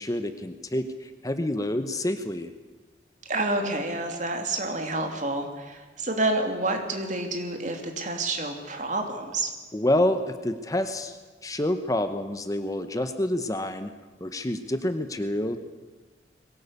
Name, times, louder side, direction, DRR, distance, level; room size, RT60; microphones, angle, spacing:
voice 1, 0.0-2.5 9.7-11.2 11.4-13.9 14.2-15.6, left 1 dB, 20° left, 9 dB, 0.9 m, -28 dB
voice 2, 3.3-9.5, right 2 dB, 45° right, 4 dB, 3.0 m, -29 dB
21.5 x 18.0 x 8.4 m, 1.3 s
head